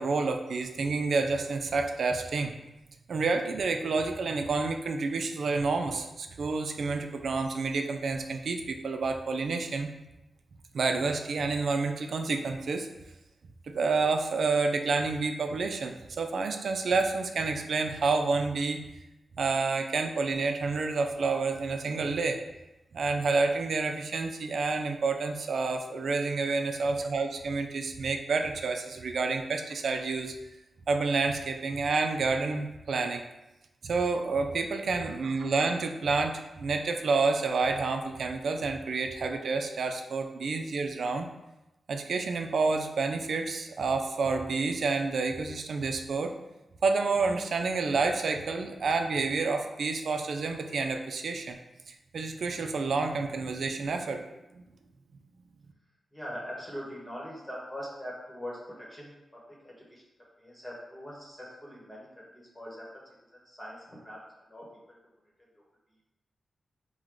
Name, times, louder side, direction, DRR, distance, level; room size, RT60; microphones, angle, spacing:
voice 1, 0.0-2.5 3.1-9.9 10.7-12.9 13.7-18.8 19.4-22.4 22.9-30.3 30.9-33.2 33.8-41.3 41.9-46.3 46.8-51.6 51.9-54.2 54.5-54.6, right 4 dB, 75° right, 5 dB, 0.4 m, -29 dB
voice 2, 56.1-60.0 60.4-62.9 63.3-65.0, equal, 15° left, -5 dB, 1.1 m, -42 dB
4.6 x 2.2 x 3.7 m, 0.97 s
wide cardioid pair, 100°, 0 cm